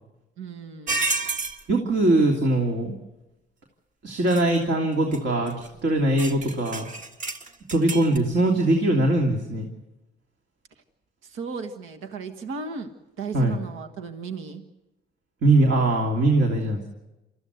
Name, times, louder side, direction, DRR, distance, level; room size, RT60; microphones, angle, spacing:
voice 1, 0.4-1.1 11.2-12.9 13.2-14.6, right 5 dB, 90° right, 6 dB, 1.6 m, -35 dB
sound 1, 0.9-1.6 4.3-4.6 5.1-5.2 5.5-5.7 6.2-8.2, right 3 dB, 40° right, 1.8 m, -30 dB
voice 2, 1.7-3.0 4.0-6.9 7.7-9.7 13.3-13.6 15.4-16.9, right 2 dB, 65° right, 1 dB, 3.0 m, -21 dB
28.0 x 14.5 x 8.2 m, 1.0 s
cardioid pair, 90°, 20 cm